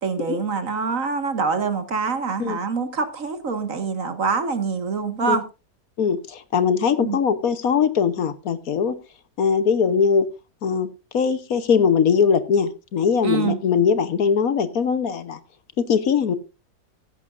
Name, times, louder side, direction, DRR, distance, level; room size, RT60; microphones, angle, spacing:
voice 1, 0.0-5.4 7.0-7.2 13.2-13.6, right 5 dB, 55° right, 2.0 m, -25 dB
voice 2, 6.0-9.0 9.4-10.3 10.6-10.9 11.1-15.4 15.8-16.4, left 6 dB, 65° left, 1.4 m, -21 dB
15.5 x 11.5 x 2.5 m
omnidirectional pair, 1.7 m